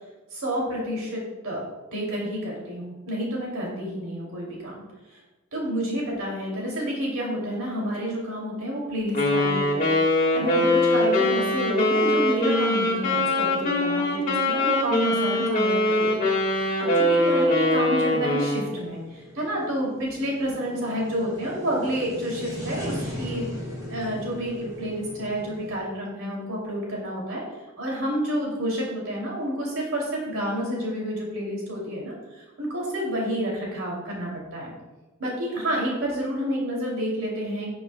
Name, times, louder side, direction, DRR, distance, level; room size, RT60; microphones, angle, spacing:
voice 1, 0.3-1.6 1.9-4.7 5.1-5.2 5.5-23.4 23.9-27.4 27.8-34.7 35.2-37.7, equal, 80° right, -3 dB, 2.9 m, -29 dB
Wind instrument woodwind instrument, 9.1-18.7, left 1 dB, 40° left, 1.9 m, -22 dB
sound 1, 13.4-25.8, equal, 15° right, 3.2 m, -39 dB
17.5 x 6.9 x 2.3 m, 1.1 s
head